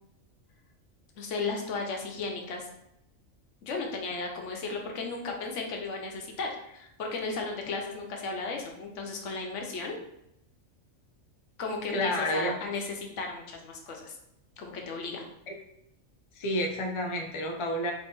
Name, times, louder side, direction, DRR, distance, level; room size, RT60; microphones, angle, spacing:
voice 1, 1.2-2.7 3.6-10.0 11.6-14.2 14.6-15.2, left 3 dB, 70° left, 1 dB, 1.1 m, -35 dB
voice 2, 11.9-12.6 15.5-15.6 16.4-17.9, left 1 dB, 50° left, 1 dB, 0.3 m, -30 dB
3.8 x 2.8 x 3.8 m, 0.81 s
omnidirectional pair, 1.4 m